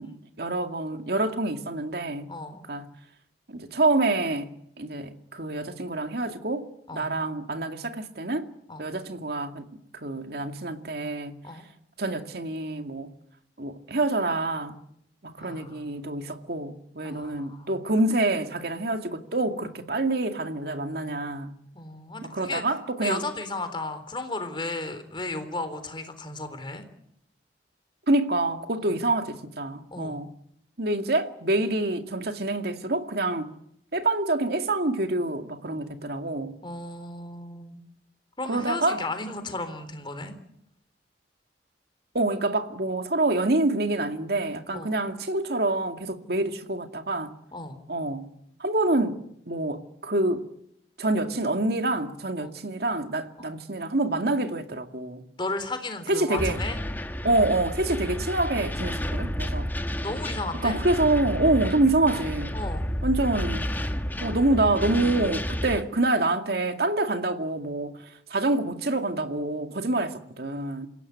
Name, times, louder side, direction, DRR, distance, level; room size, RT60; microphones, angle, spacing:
voice 1, 0.0-2.3 2.7-2.9 3.5-4.5 4.8-8.5 8.8-9.7 9.9-11.4 12.0-13.1 13.6-14.8 15.2-21.5 22.2-23.2 28.1-30.3 30.8-33.5 33.9-36.6 38.5-39.0 42.1-47.3 47.9-48.3 48.6-50.5 51.0-55.2 56.1-56.6 57.2-59.7 60.6-62.6 63.0-63.7 64.2-70.9, right 2 dB, 60° right, 2.2 m, -27 dB
voice 2, 2.3-2.6 6.9-7.1 8.7-8.9 11.4-11.7 15.4-15.9 17.0-17.8 21.7-22.6 23.0-26.8 28.8-28.9 29.9-30.2 36.6-37.8 38.4-40.3 44.7-44.9 47.5-47.8 52.4-52.5 53.4-53.5 55.4-56.8 60.0-60.8 62.5-62.9, left 2 dB, 25° left, 3.6 m, -34 dB
sound 1, 56.4-65.8, equal, 10° left, 1.5 m, -31 dB
28.0 x 17.0 x 9.7 m
head